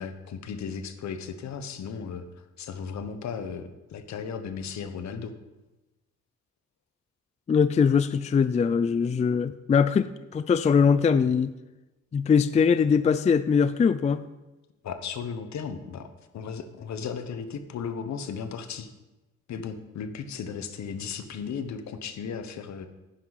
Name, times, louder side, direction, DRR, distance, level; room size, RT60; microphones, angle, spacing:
voice 1, 0.0-2.2 2.6-5.3 14.8-16.1 16.3-18.9 19.5-22.9, left 6 dB, 65° left, 8 dB, 1.2 m, -35 dB
voice 2, 7.5-10.1 10.3-11.5 12.1-14.2, left 6 dB, 25° left, 13 dB, 0.4 m, -22 dB
11.0 x 10.0 x 4.2 m, 1.1 s
cardioid pair, 90°, 30 cm